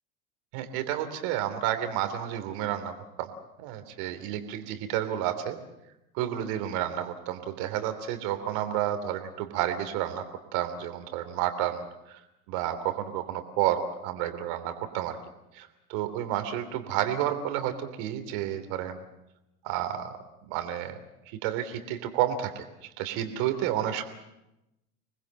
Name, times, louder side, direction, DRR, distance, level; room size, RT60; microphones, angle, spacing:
voice 1, 0.5-3.3 3.6-5.6 6.1-10.2 10.5-12.2 12.5-15.2 15.5-19.0 19.6-20.1 20.5-21.0 21.4-22.6 23.0-24.0, right 11 dB, 55° right, 9 dB, 3.1 m, -30 dB
26.0 x 20.0 x 7.6 m, 0.93 s
hypercardioid pair, 90°, 44 cm